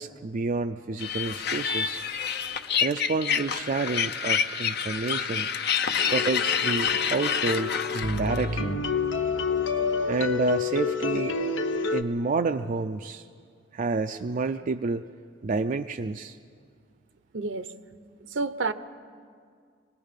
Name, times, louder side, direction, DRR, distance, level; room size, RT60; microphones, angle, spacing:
voice 1, 0.0-2.0 2.8-5.5 6.1-8.8 10.1-11.4 11.9-13.2 13.7-15.1 15.4-16.4, right 4 dB, 45° right, 7 dB, 0.4 m, -29 dB
sound 1, 1.0-8.5, left 7 dB, 60° left, 0.8 m, -28 dB
sound 2, 6.0-12.0, left 4 dB, 90° left, 0.9 m, -29 dB
voice 2, 17.3-17.7 18.3-18.7, right 3 dB, 75° right, 12 dB, 0.8 m, -29 dB
26.5 x 19.5 x 5.2 m, 2.1 s
head